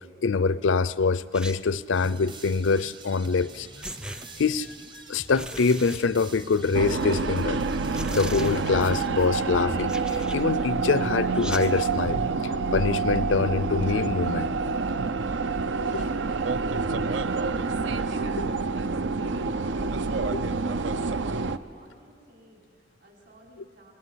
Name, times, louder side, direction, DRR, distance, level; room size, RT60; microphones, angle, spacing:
voice 1, 0.2-3.7 4.4-4.7 5.1-7.6 8.1-14.5 15.3-15.4 20.3-20.4, left 4 dB, 80° left, 17 dB, 0.6 m, -25 dB
sound 1, 1.3-2.0 3.3-3.4 3.8-4.8 5.3-6.8 7.2-7.3 7.8-8.9 9.7-10.6 11.3-12.0, right 1 dB, 5° right, 0.6 m, -40 dB
sound 2, 1.9-9.6, right 2 dB, 25° right, 0.9 m, -45 dB
sound 3, 6.7-21.6, right 4 dB, 75° right, 0.8 m, -27 dB
voice 2, 15.7-23.9, right 1 dB, 55° right, -1 dB, 5.5 m, -54 dB
28.0 x 20.0 x 9.7 m, 2.3 s
head